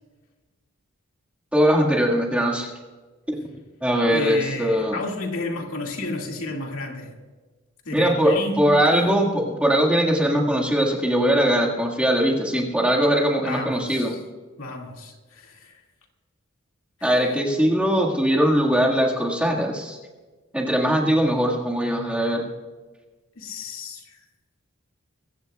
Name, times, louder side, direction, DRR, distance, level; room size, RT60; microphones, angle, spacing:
voice 1, 1.5-2.7 3.3-3.4 3.8-5.0 7.9-14.1 17.0-20.0 20.5-22.5, equal, 5° right, 1.8 m, -21 dB
voice 2, 4.1-7.1 7.8-9.3 13.4-14.2 14.6-15.8 17.0-17.3 23.4-24.2, left 2 dB, 80° left, 2.2 m, -32 dB
22.0 x 15.5 x 2.3 m
head